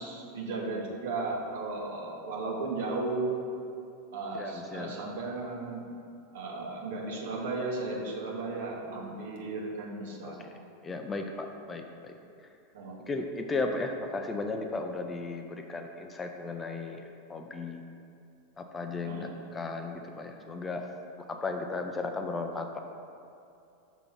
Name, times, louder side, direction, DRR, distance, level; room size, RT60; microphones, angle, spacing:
voice 1, 0.0-3.4 4.1-5.9 6.3-10.5 12.7-13.1 19.0-19.5, right 3 dB, 65° right, -1 dB, 1.1 m, -35 dB
voice 2, 4.3-4.9 10.2-10.3 10.8-12.2 13.1-17.0 17.3-17.8 18.6-20.8 21.3-22.7, left 3 dB, 20° left, 4 dB, 0.5 m, -35 dB
5.8 x 3.7 x 5.9 m, 2.6 s
figure-of-eight pair, 90°, 0 cm